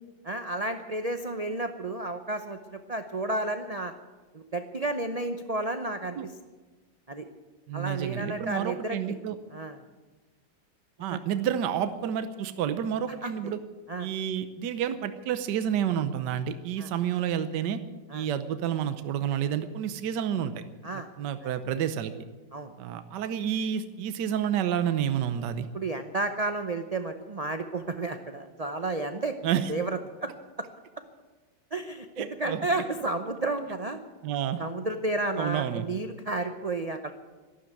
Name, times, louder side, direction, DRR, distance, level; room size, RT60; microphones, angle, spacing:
voice 1, 0.2-3.9 4.3-6.3 7.1-7.3 7.7-9.0 9.5-9.8 11.1-11.2 13.2-13.5 13.9-14.1 16.8-16.9 18.1-18.3 20.8-21.1 22.5-22.7 25.7-29.4 29.7-30.3 31.7-34.0 34.6-37.1, right 2 dB, 45° right, 7 dB, 0.5 m, -32 dB
voice 2, 7.7-9.4 11.0-13.6 14.0-17.8 18.1-20.6 20.9-22.1 22.8-25.7 29.4-29.7 32.2-32.6 34.2-34.6 35.4-35.8, right 9 dB, 75° right, 11 dB, 1.4 m, -29 dB
12.5 x 12.5 x 9.0 m, 1.2 s
omnidirectional pair, 1.9 m